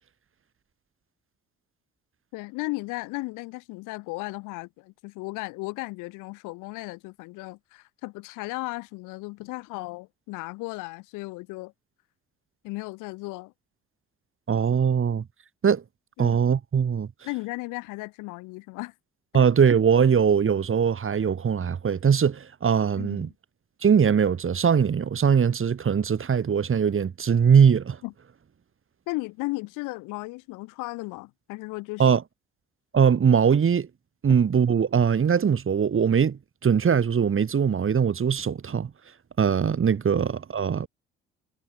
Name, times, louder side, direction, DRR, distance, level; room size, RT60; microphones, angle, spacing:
voice 1, 2.3-11.7 12.6-13.5 16.2-16.4 17.2-18.9 19.3-19.5 23.0-23.3 28.0-28.1 29.1-32.1, left 24 dB, 75° left, 3.2 m, -35 dB
voice 2, 14.5-15.2 15.6-15.8 16.2-17.1 19.3-23.3 23.8-28.0 32.0-32.2 32.9-33.9 34.2-38.9 39.4-40.9, right 7 dB, 40° right, 3.0 m, -21 dB
hypercardioid pair, 55°, 31 cm